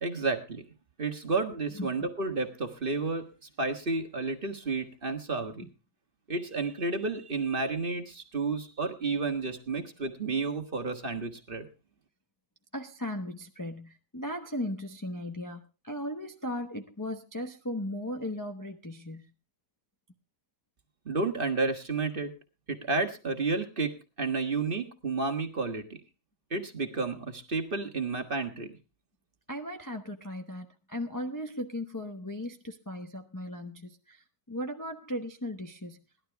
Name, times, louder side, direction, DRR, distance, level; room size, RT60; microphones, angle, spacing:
voice 1, 0.0-0.6 1.0-3.3 3.6-5.7 6.3-11.7 21.0-22.3 22.7-26.0 26.5-28.8, right 3 dB, 35° right, 5 dB, 1.5 m, -31 dB
voice 2, 12.7-19.3 29.5-36.0, left 1 dB, 15° left, 3 dB, 0.6 m, -37 dB
18.0 x 12.0 x 3.4 m, 0.30 s
omnidirectional pair, 1.8 m